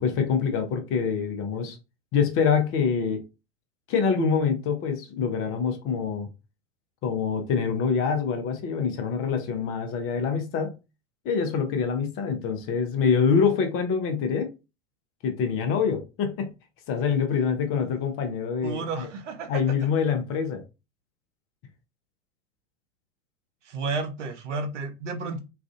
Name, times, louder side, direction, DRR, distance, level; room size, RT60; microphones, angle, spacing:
voice 1, 0.0-1.8 2.1-3.2 3.9-6.3 7.0-10.7 11.2-14.5 15.2-16.5 16.9-19.1 19.5-20.6, left 6 dB, 35° left, 0.8 m, -25 dB
voice 2, 18.6-19.6 23.6-25.4, right 4 dB, 75° right, 0.8 m, -32 dB
3.2 x 2.4 x 2.5 m
figure-of-eight pair, 85°, 37 cm